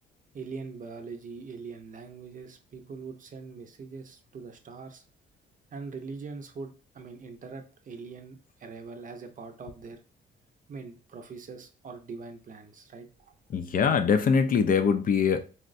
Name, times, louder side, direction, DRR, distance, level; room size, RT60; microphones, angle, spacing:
voice 1, 0.3-5.0 5.7-10.0 10.7-13.3, right 4 dB, 40° right, 0.6 m, -42 dB
voice 2, 13.5-15.4, left 6 dB, 45° left, 0.4 m, -23 dB
4.2 x 2.1 x 2.5 m
cardioid pair, 90°, 20 cm